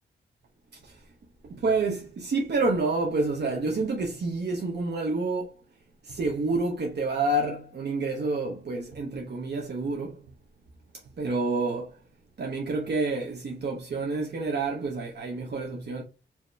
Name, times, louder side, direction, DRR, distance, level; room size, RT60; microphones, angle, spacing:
voice 1, 0.7-1.0 1.4-5.6 6.0-10.3 11.2-12.0 12.4-16.0, right 3 dB, 60° right, 1.0 m, -28 dB
4.6 x 2.9 x 3.3 m
cardioid pair, 75°, 20 cm